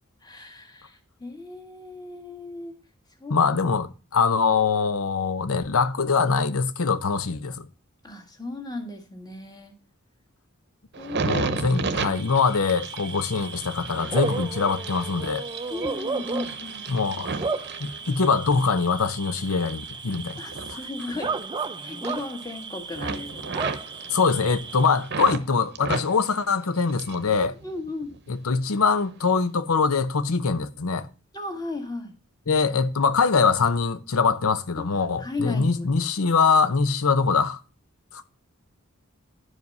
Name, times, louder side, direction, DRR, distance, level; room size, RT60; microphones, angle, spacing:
voice 1, 0.2-2.8 3.2-3.4 8.0-9.7 11.0-11.5 15.7-16.8 20.4-21.4 21.8-23.6 27.4-28.1 31.3-32.1 34.8-34.9 35.2-35.9, left 2 dB, 20° left, 1.7 m, -35 dB
voice 2, 3.3-7.7 11.2-15.5 16.9-17.3 17.8-20.4 20.7-20.8 24.1-27.5 28.3-31.1 32.5-37.6 38.1-38.2, left 5 dB, 80° left, 0.8 m, -23 dB
sound 1, 10.9-18.6 19.1-21.7 21.9-22.6 22.9-25.4 25.8-27.3 27.6-28.3 28.9-29.1, right 4 dB, 55° right, 0.8 m, -34 dB
Bark / Cricket, 11.9-25.2, right 4 dB, 20° right, 0.5 m, -34 dB
11.0 x 5.0 x 5.4 m
head